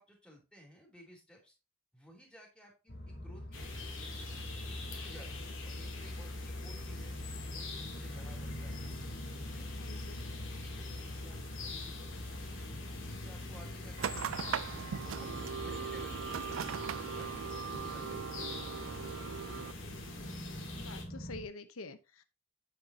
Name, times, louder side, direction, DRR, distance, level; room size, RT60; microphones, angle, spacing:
voice 1, 0.0-1.5 1.9-3.7 4.7-8.9 9.5-9.9 10.5-14.1 15.0-16.4 16.7-18.7 19.4-19.5, equal, 5° left, 0 dB, 3.3 m, -57 dB
sound 1, 2.9-21.5, left 1 dB, 50° left, 2.8 m, -44 dB
sound 2, 3.5-21.0, left 3 dB, 70° left, 2.9 m, -46 dB
voice 2, 9.8-10.2 19.6-20.5 20.8-22.2, left 3 dB, 85° left, 11 dB, 0.9 m, -48 dB
sound 3, 14.0-19.7, right 7 dB, 70° right, 0.4 m, -39 dB
8.8 x 8.0 x 2.8 m, 0.28 s
head